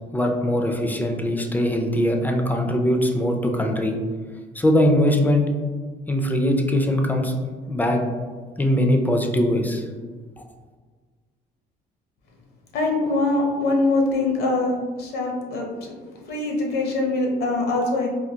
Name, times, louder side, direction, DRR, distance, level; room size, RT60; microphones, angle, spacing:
voice 1, 0.1-4.0 4.5-5.5 6.1-7.3 7.7-8.0 8.6-9.9 10.4-10.5, left 1 dB, 10° left, 3 dB, 0.4 m, -21 dB
voice 2, 12.7-15.9 16.3-18.1, left 2 dB, 70° left, 1 dB, 0.8 m, -23 dB
3.5 x 2.3 x 2.8 m, 1.5 s
cardioid pair, 110°, 17 cm